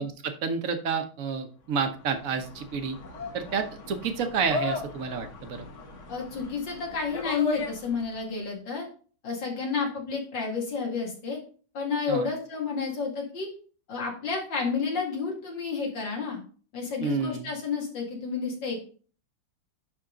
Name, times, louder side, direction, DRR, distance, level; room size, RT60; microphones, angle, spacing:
voice 1, 0.0-3.0 3.3-5.7 12.1-12.3 17.0-17.5, right 5 dB, 55° right, 7 dB, 1.2 m, -30 dB
sound 1, 1.9-8.2, left 2 dB, 45° left, 1.5 m, -37 dB
voice 2, 6.1-8.9 9.2-11.4 11.7-13.5 13.9-16.4 16.7-18.9, left 5 dB, 80° left, -1 dB, 2.8 m, -30 dB
10.5 x 3.6 x 3.8 m, 0.40 s
omnidirectional pair, 2.0 m